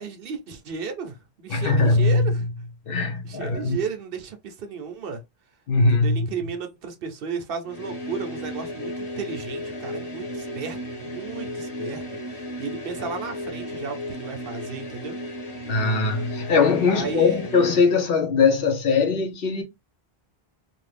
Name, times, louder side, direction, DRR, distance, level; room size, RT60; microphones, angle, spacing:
voice 1, 0.0-2.4 3.2-5.2 5.9-15.2 16.9-17.4, right 5 dB, 65° right, 0.8 m, -34 dB
voice 2, 1.5-2.4 2.9-3.8 5.7-6.3 15.7-19.6, left 4 dB, 65° left, 0.9 m, -21 dB
sound 1, 7.6-18.0, left 1 dB, 85° left, 1.3 m, -34 dB
2.5 x 2.5 x 3.2 m
omnidirectional pair, 1.1 m